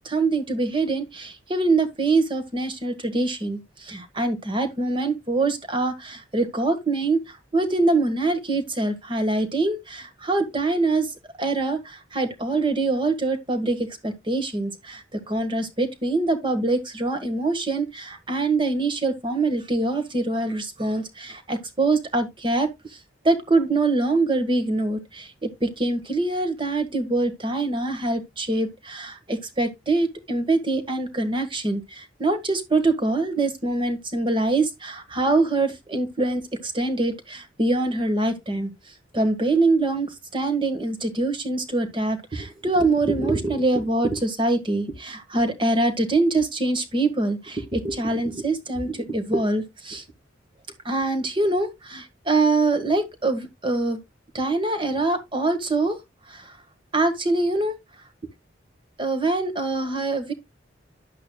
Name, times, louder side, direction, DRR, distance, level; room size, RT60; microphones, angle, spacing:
voice 1, 0.1-11.1 11.4-23.0 23.2-38.7 39.1-50.0 50.9-54.0 54.3-56.0 56.3-56.6 56.9-57.8 59.0-60.3, right 2 dB, 25° right, 1.7 m, -24 dB
11.0 x 8.3 x 2.3 m
head